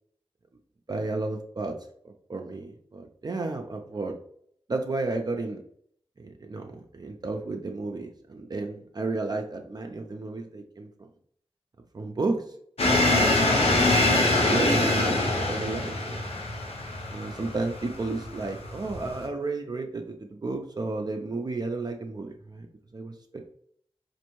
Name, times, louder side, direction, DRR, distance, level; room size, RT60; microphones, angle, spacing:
voice 1, 0.9-1.8 2.0-4.2 4.7-5.6 6.2-11.1 11.9-12.6 12.9-16.2 16.8-22.7 22.9-23.5, right 3 dB, 45° right, 3 dB, 0.4 m, -33 dB
sound 1, 12.8-19.2, left 2 dB, 85° left, 0.7 m, -24 dB
4.3 x 2.6 x 3.0 m, 0.66 s
wide cardioid pair, 80°, 10 cm